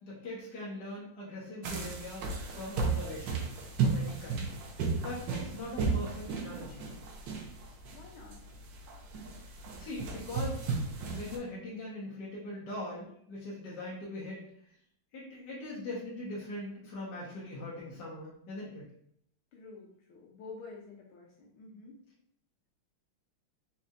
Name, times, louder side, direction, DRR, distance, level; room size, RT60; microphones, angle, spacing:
voice 1, 0.0-3.5 3.8-4.5 5.0-6.9 9.8-10.6 11.1-14.4 15.1-18.9, left 1 dB, 60° left, -6 dB, 1.8 m, -41 dB
sound 1, 1.6-11.4, right 4 dB, 70° right, 1.3 m, -34 dB
voice 2, 7.9-8.4 19.5-22.0, left 4 dB, 85° left, -2 dB, 1.7 m, -49 dB
4.2 x 4.2 x 2.5 m, 0.67 s
omnidirectional pair, 2.2 m